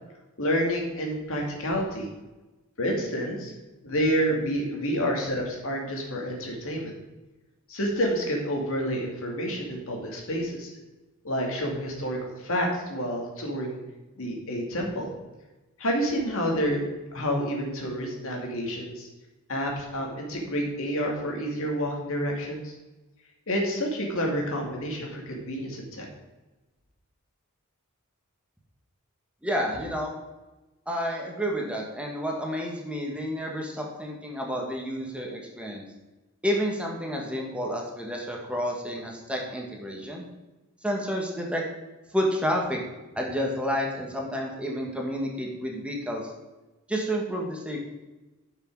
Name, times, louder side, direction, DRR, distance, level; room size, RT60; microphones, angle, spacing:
voice 1, 0.4-2.1 2.8-3.5 3.8-6.9 7.7-10.7 11.2-13.8 14.2-15.1 15.8-16.8 17.1-19.1 19.5-22.7 23.5-26.1, equal, 65° left, 0 dB, 2.4 m, -29 dB
voice 2, 29.4-30.1 30.9-35.8 36.4-40.3 40.8-41.7 42.1-42.8 43.1-46.3 46.9-47.8, equal, 5° right, -1 dB, 1.5 m, -30 dB
11.0 x 6.1 x 4.7 m, 1.1 s
head